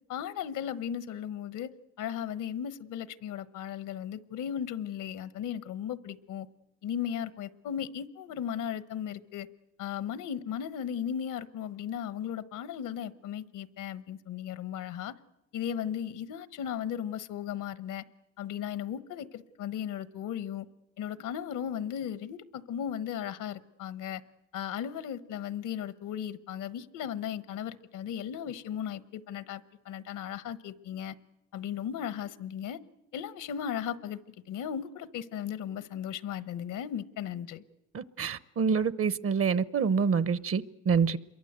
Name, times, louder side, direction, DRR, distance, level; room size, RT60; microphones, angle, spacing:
voice 1, 0.1-1.7 2.0-6.5 6.8-9.5 9.8-15.1 15.5-18.0 18.4-20.7 21.0-24.2 24.5-31.1 31.5-32.8 33.1-34.2 34.5-37.6, left 9 dB, 85° left, 1.2 m, -36 dB
voice 2, 37.9-41.2, right 6 dB, 50° right, 1.0 m, -27 dB
27.0 x 23.0 x 8.1 m
cardioid pair, 90°, 30 cm